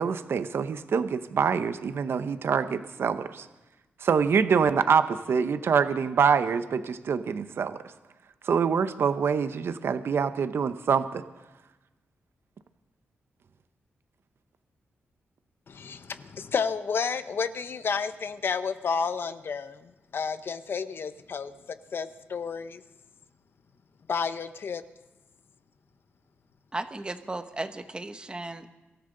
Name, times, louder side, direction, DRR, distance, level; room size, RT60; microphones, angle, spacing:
voice 1, 0.0-3.5 4.0-7.8 8.4-11.2, right 6 dB, 65° right, 0.7 m, -25 dB
voice 2, 15.7-22.8 24.1-24.8, left 5 dB, 60° left, 0.8 m, -31 dB
voice 3, 26.7-28.7, right 2 dB, 20° right, 1.1 m, -35 dB
23.5 x 13.5 x 3.9 m
cardioid pair, 95°, 4 cm